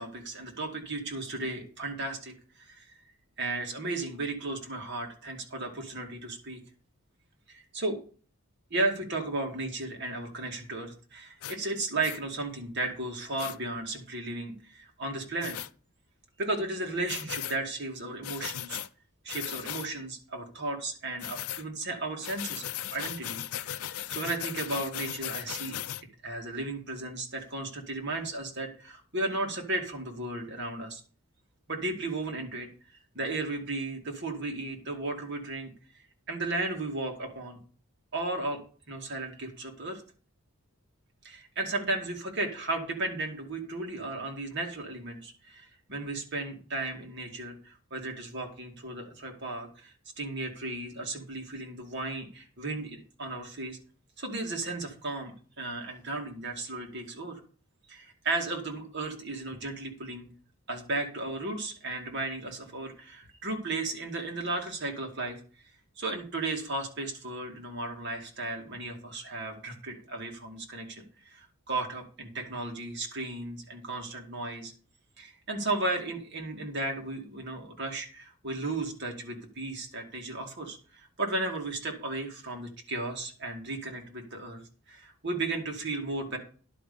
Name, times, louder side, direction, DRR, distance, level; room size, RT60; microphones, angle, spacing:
voice 1, 0.0-3.0 3.4-6.6 7.5-8.0 8.7-15.6 16.4-18.8 19.2-25.8 26.2-31.0 31.7-32.7 33.1-35.7 36.3-37.6 38.1-38.6 38.9-40.0 41.2-53.8 54.2-57.4 57.9-60.3 60.7-65.4 66.0-74.7 75.2-86.4, right 2 dB, 50° right, 2 dB, 2.3 m, -35 dB
sound 1, 11.4-11.6 12.0-12.2 13.4-13.6 15.4-15.7 17.1-17.6 18.2-18.9 19.3-19.9 21.2-21.6 22.2-26.0, left 12 dB, 80° left, 0.5 m, -37 dB
11.0 x 5.3 x 6.9 m, 0.40 s
head